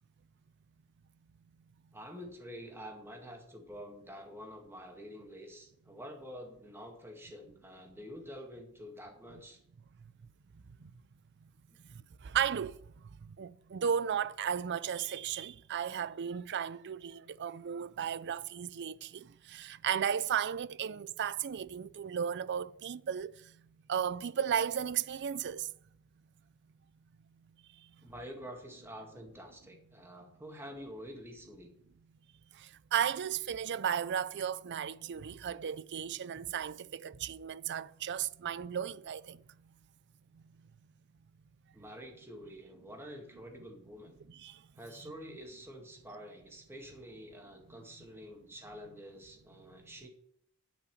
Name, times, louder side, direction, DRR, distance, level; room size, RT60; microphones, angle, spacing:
voice 1, 1.9-9.6 11.7-11.8 28.0-31.7 41.7-44.2 44.8-50.1, equal, 10° right, 2.0 m, -48 dB
voice 2, 10.5-10.9 11.9-12.8 13.2-23.6 23.9-25.7 27.7-27.9 32.5-39.4 40.3-40.4 44.3-44.6, right 8 dB, 50° right, 0.4 m, -35 dB
10.5 x 5.8 x 7.7 m
head